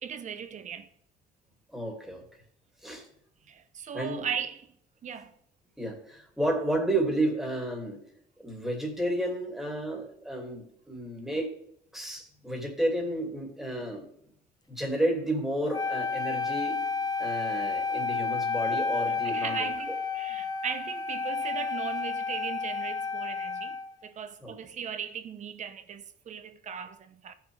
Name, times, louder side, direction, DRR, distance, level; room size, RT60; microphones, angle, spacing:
voice 1, 0.0-0.9 3.5-4.7 5.0-5.3 19.1-27.3, right 7 dB, 45° right, 1.1 m, -38 dB
voice 2, 1.7-2.2 2.8-3.0 3.9-4.2 5.8-8.0 8.4-11.5 11.9-14.0 14.7-16.8 17.2-19.7 24.4-24.6, right 1 dB, ahead, 2.6 m, -31 dB
Wind instrument woodwind instrument, 15.7-24.0, left 4 dB, 25° left, 0.9 m, -31 dB
15.0 x 6.1 x 3.4 m
cardioid pair, 110°, 17 cm